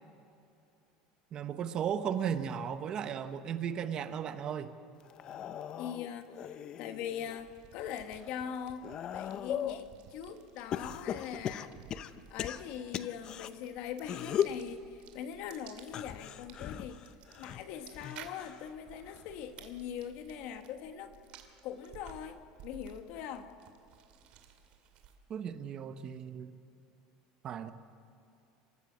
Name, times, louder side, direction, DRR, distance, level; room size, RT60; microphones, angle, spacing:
voice 1, 1.3-4.7 25.3-26.5 27.4-27.7, right 8 dB, 35° right, 10 dB, 0.9 m, -35 dB
sound 1, 5.1-7.4 7.9-9.9 10.7-13.5 14.0-14.6 15.8-18.7 19.1-19.5 20.7-20.8, left 9 dB, 35° left, 0.7 m, -38 dB
voice 2, 5.8-8.9 9.1-11.8 12.3-17.0 17.4-21.1 21.6-23.5, left 9 dB, 60° left, 8 dB, 1.5 m, -42 dB
sound 2, 7.2-25.4, right 8 dB, 50° right, 2.3 m, -56 dB
26.0 x 14.5 x 7.4 m, 2.6 s
cardioid pair, 150°, 2 cm